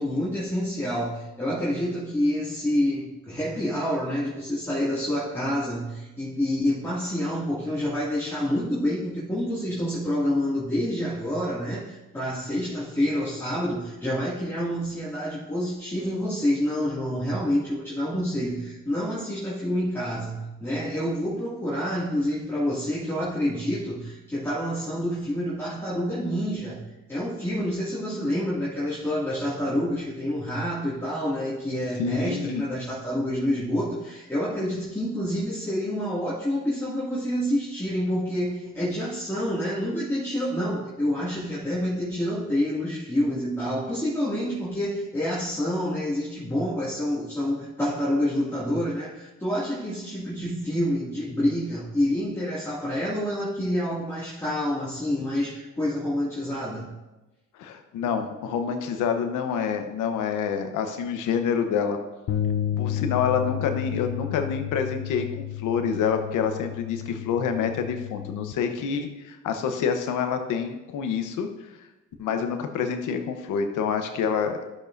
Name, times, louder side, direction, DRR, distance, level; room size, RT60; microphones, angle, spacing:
voice 1, 0.0-26.8 27.1-56.9, equal, 10° left, -9 dB, 2.3 m, -28 dB
voice 2, 32.0-32.6 57.6-62.0 62.8-71.5 71.7-71.8 72.2-74.6, left 6 dB, 90° left, 6 dB, 1.0 m, -27 dB
sound 1, 62.3-68.5, left 11 dB, 50° left, 0.7 m, -31 dB
13.0 x 7.1 x 2.6 m, 1.1 s
cardioid pair, 90°, 30 cm